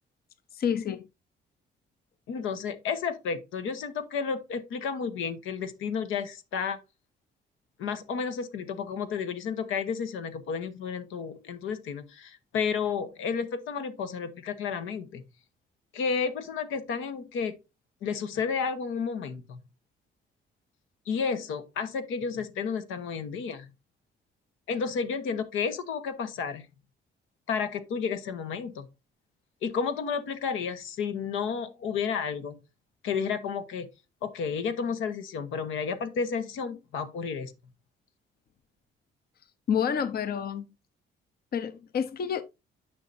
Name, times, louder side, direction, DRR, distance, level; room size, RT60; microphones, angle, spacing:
voice 1, 0.5-1.1 39.7-40.6 41.5-42.4, left 7 dB, 50° left, 0.7 m, -28 dB
voice 2, 2.3-6.8 7.8-15.2 15.9-17.6 18.0-19.6 21.1-23.7 24.7-26.7 27.5-28.8 29.6-32.6 33.0-33.9 34.2-37.5, left 6 dB, 85° left, 1.1 m, -31 dB
9.8 x 5.7 x 2.6 m
cardioid pair, 90°, 20 cm